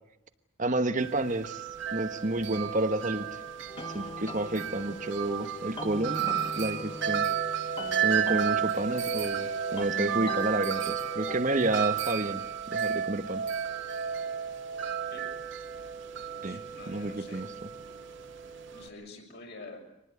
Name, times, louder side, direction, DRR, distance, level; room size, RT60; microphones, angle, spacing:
voice 1, 0.6-3.4 3.9-7.3 8.0-13.5 16.4-16.6 16.9-17.5, right 2 dB, 35° right, 8 dB, 1.1 m, -30 dB
Wind chime, 1.0-18.9, right 8 dB, 55° right, 1.9 m, -33 dB
sound 1, 3.7-11.4, left 2 dB, 25° left, 1.0 m, -40 dB
voice 2, 16.3-17.5 18.7-19.8, left 3 dB, 50° left, 2 dB, 6.5 m, -47 dB
24.5 x 20.0 x 8.2 m, 0.84 s
head